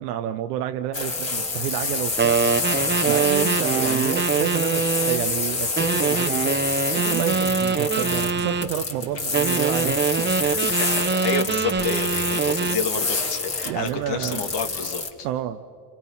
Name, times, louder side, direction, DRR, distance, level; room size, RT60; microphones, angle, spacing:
voice 1, 0.0-2.4 3.0-6.6 6.9-10.3 13.6-14.5 15.2-15.6, right 11 dB, 80° right, 7 dB, 0.9 m, -29 dB
sound 1, 0.9-15.1, left 3 dB, 30° left, 2.9 m, -27 dB
sound 2, 2.2-5.3 5.8-8.7 9.3-12.9, right 5 dB, 25° right, 1.1 m, -23 dB
voice 2, 10.4-15.3, left 5 dB, 65° left, 5 dB, 2.6 m, -30 dB
29.5 x 26.5 x 5.8 m, 2.2 s
hypercardioid pair, 65°, 46 cm